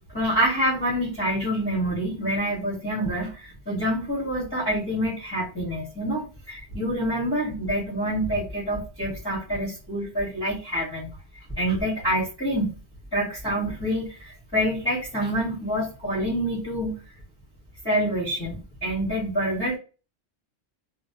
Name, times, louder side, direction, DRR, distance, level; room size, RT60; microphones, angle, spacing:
voice 1, 0.1-11.1 11.6-12.7 13.1-16.9 17.8-19.8, equal, 20° left, -8 dB, 1.4 m, -27 dB
3.1 x 2.3 x 2.6 m, 0.33 s
omnidirectional pair, 1.2 m